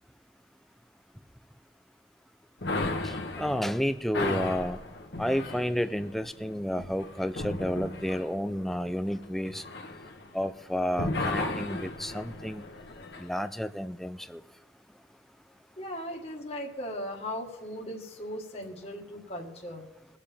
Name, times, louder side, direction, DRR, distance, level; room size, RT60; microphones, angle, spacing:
sound 1, 2.6-10.6 10.9-13.3, left 2 dB, 70° left, 1.2 m, -35 dB
voice 1, 3.0-4.8 5.2-9.6 10.3-12.6 13.2-14.4, equal, ahead, 12 dB, 0.4 m, -31 dB
voice 2, 15.8-19.9, equal, 35° left, 0 dB, 1.6 m, -38 dB
22.0 x 7.5 x 3.5 m, 1.1 s
head